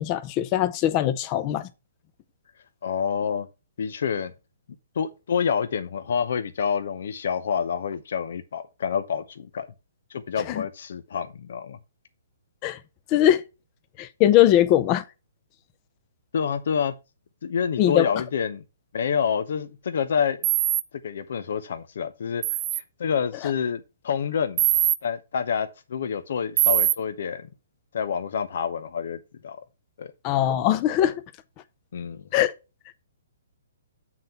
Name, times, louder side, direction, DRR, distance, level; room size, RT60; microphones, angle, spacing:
voice 1, 0.0-1.7 10.5-10.6 12.6-12.8 13.1-13.4 14.0-15.0 17.8-18.1 30.2-31.2 32.3-32.5, left 12 dB, 30° left, 0.7 m, -21 dB
voice 2, 2.8-3.5 3.8-4.3 5.0-9.7 10.1-11.8 16.3-16.9 17.4-18.6 18.9-20.5 21.0-22.4 22.7-24.6 25.0-27.4 27.9-29.6 30.0-30.1 31.9-32.3, left 7 dB, 65° left, 0.7 m, -27 dB
sound 1, 20.4-20.8 22.4-22.8 24.6-25.0 26.6-26.9, right 14 dB, 25° right, 0.4 m, -21 dB
7.5 x 3.9 x 5.8 m
hypercardioid pair, 150°, 0 cm